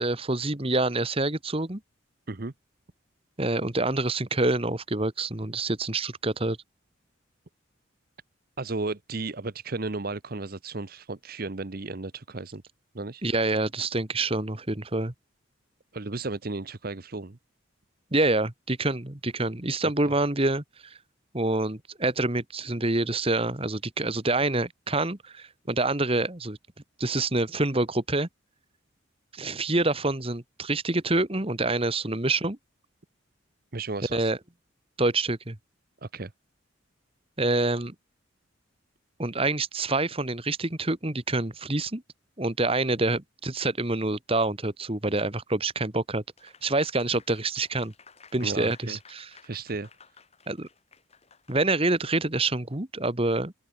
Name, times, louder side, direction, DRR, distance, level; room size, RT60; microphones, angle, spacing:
voice 1, 0.0-1.8 3.4-6.6 13.2-15.1 18.1-21.0 21.3-26.6 27.0-28.3 29.3-32.6 34.1-34.4 35.0-35.6 37.4-37.9 39.2-42.0 42.4-47.9 48.3-49.3 50.5-50.7 51.5-53.5, right 2 dB, 25° right, 1.6 m, -27 dB
voice 2, 8.6-12.6 12.9-13.2 15.9-17.4 20.0-20.1 33.7-34.3 36.0-36.3 48.4-49.0 49.4-49.9, right 3 dB, 45° right, 0.9 m, -34 dB
Applause, 46.4-51.9, left 6 dB, 30° left, 7.5 m, -55 dB
open air
head